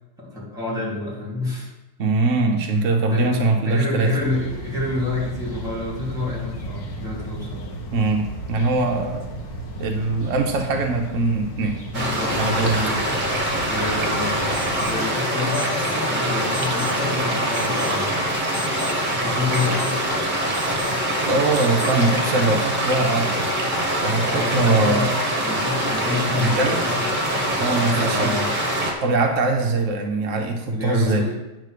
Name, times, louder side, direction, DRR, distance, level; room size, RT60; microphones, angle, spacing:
voice 1, 0.2-1.7 3.1-3.3 3.6-7.6 11.9-13.0 13.7-18.1 19.2-20.0 24.3-25.1 25.4-28.4 30.6-31.3, left 2 dB, ahead, -6 dB, 3.0 m, -28 dB
voice 2, 2.0-4.1 7.9-9.3 9.8-11.8 12.4-12.8 21.3-23.5 24.0-25.1 26.4-26.8 27.6-28.3 29.0-31.3, right 3 dB, 65° right, 3 dB, 0.7 m, -22 dB
sound 1, 4.2-14.9, right 1 dB, 60° left, 1.8 m, -34 dB
sound 2, 11.9-28.9, equal, 25° right, 1.4 m, -24 dB
Alarm, 14.5-15.0 15.5-16.0 16.5-17.0 17.5-18.0 18.5-19.0 19.5-20.0 20.5-21.0 21.5-22.0, left 3 dB, 25° left, 2.1 m, -38 dB
9.6 x 4.2 x 6.6 m, 1.0 s
omnidirectional pair, 2.3 m